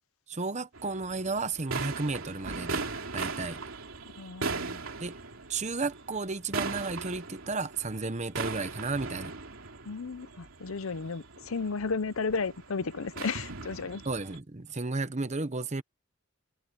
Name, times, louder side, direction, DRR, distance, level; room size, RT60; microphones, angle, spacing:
voice 1, 0.3-2.8 3.1-3.6 5.0-5.1 5.5-9.3 14.1-15.8, right 3 dB, 35° right, 1.0 m, -33 dB
sound 1, 0.7-14.4, right 4 dB, 80° right, 2.9 m, -39 dB
voice 2, 4.1-4.9 9.8-14.0, left 4 dB, 85° left, 0.8 m, -34 dB
head